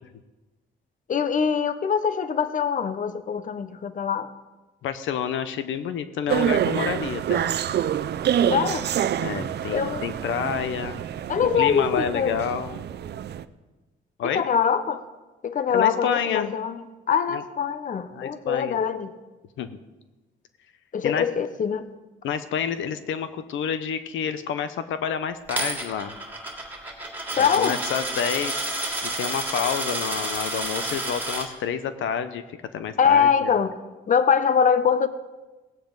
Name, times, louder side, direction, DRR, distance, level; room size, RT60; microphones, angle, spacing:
voice 1, 1.1-4.3 8.5-8.9 9.7-10.0 11.3-12.4 14.3-15.0 15.4-16.8 17.1-19.1 20.9-21.9 27.4-27.8 33.0-33.7 34.1-35.1, left 7 dB, 40° left, 12 dB, 0.8 m, -23 dB
voice 2, 4.8-7.5 9.2-11.0 11.6-12.8 14.2-14.4 15.7-16.5 17.3-17.4 18.1-18.8 19.6-19.7 21.0-21.2 22.2-26.1 27.4-33.5, left 8 dB, 75° left, 11 dB, 0.8 m, -29 dB
sound 1, 6.3-13.4, right 10 dB, 55° right, 0.6 m, -27 dB
Coin (dropping), 25.5-31.4, right 2 dB, 10° right, 3.3 m, -30 dB
18.5 x 8.7 x 3.9 m, 1.1 s
cardioid pair, 90°, 20 cm